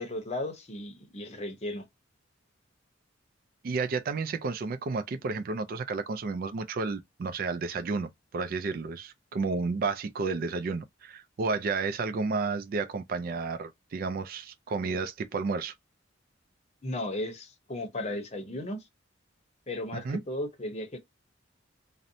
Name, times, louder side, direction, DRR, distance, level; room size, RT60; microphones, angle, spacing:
voice 1, 0.0-1.8 16.8-18.8 19.7-21.0, left 1 dB, 35° left, 0.7 m, -35 dB
voice 2, 3.6-15.7 20.0-20.2, right 4 dB, 50° right, 0.3 m, -31 dB
2.6 x 2.1 x 2.6 m
head